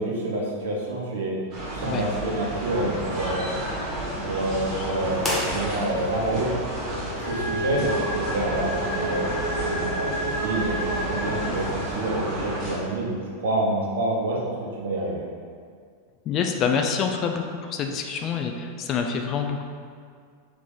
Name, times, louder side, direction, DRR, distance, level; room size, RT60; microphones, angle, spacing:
voice 1, 0.0-1.4 1.7-3.5 4.2-6.5 7.2-9.3 9.7-15.3, right 1 dB, 60° right, -3 dB, 0.8 m, -28 dB
sound 1, 1.5-12.8, right 1 dB, 35° right, 1.1 m, -31 dB
sound 2, 5.2-6.2, equal, 15° left, 0.7 m, -30 dB
sound 3, 7.2-12.1, right 1 dB, 60° left, 0.8 m, -30 dB
voice 2, 16.3-19.6, left 6 dB, 35° left, 4 dB, 0.4 m, -26 dB
3.5 x 2.9 x 3.8 m, 2.1 s
figure-of-eight pair, 90°, 0 cm